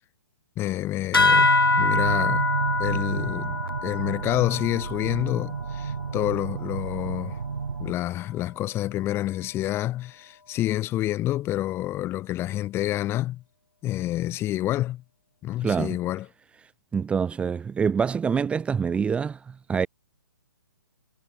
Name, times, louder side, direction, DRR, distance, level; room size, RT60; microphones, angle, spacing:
voice 1, 0.6-1.5 1.8-2.5 2.8-7.4 7.8-13.4 13.8-15.0 15.4-16.3, left 14 dB, 20° left, 2.8 m, -28 dB
sound 1, 1.1-6.1, left 4 dB, 90° left, 5.0 m, -25 dB
sound 2, 1.2-7.9, right 5 dB, 80° right, 2.3 m, -30 dB
voice 2, 15.6-16.0 16.9-19.9, right 6 dB, 10° right, 1.5 m, -26 dB
hypercardioid pair, 140°, 12 cm